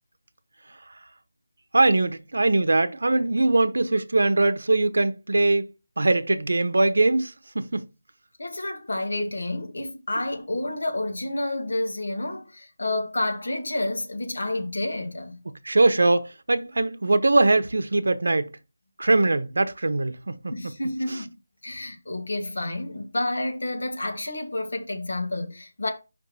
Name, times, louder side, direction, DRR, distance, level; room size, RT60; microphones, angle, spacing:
voice 1, 1.7-5.6 6.0-7.9 15.6-18.5 19.0-20.5 21.1-21.2, right 2 dB, 75° right, 0.9 m, -21 dB
voice 2, 8.4-15.4 20.5-21.3 21.6-25.9, left 2 dB, 75° left, 2.0 m, -29 dB
5.3 x 3.6 x 5.5 m
figure-of-eight pair, 180°, 0 cm